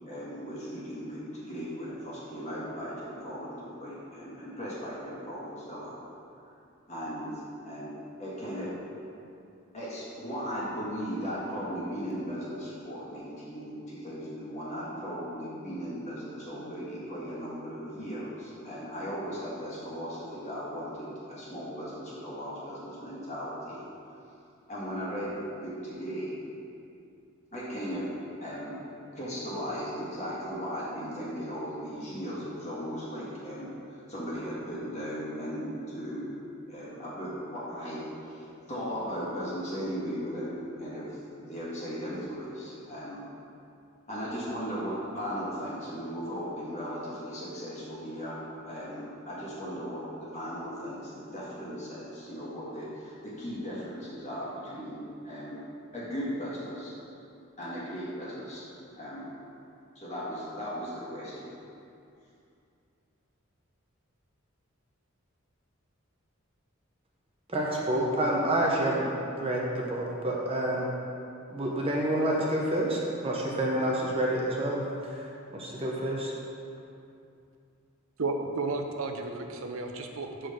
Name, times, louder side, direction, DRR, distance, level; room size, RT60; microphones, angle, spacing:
voice 1, 0.1-6.0 6.9-7.9 8.2-8.7 9.7-23.8 24.7-25.3 25.6-26.3 27.5-28.1 28.4-28.8 29.1-36.3 36.7-43.2 44.1-48.4 48.6-55.6 55.9-56.9 57.6-58.6 58.9-59.3 59.9-61.5, equal, 35° left, -8 dB, 1.6 m, -37 dB
voice 2, 67.5-69.1 69.4-70.9 71.5-75.3 75.5-76.3, right 1 dB, 30° right, -3 dB, 0.8 m, -28 dB
voice 3, 78.2-80.5, right 3 dB, 85° right, 4 dB, 0.7 m, -33 dB
5.7 x 5.2 x 6.4 m, 2.6 s
head